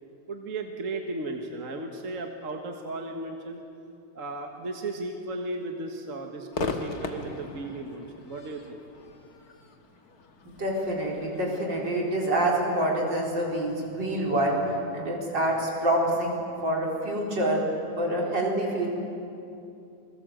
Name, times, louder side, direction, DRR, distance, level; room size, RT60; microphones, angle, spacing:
voice 1, 0.3-3.6 4.2-8.8 15.4-15.6, right 2 dB, 45° right, 3 dB, 1.9 m, -35 dB
Crowd / Fireworks, 6.5-13.9, left 3 dB, 55° left, 2.0 m, -39 dB
voice 2, 10.4-14.6 14.9-17.6 18.0-18.9, right 1 dB, 70° right, -2 dB, 5.0 m, -27 dB
28.5 x 21.0 x 7.8 m, 2.7 s
omnidirectional pair, 2.0 m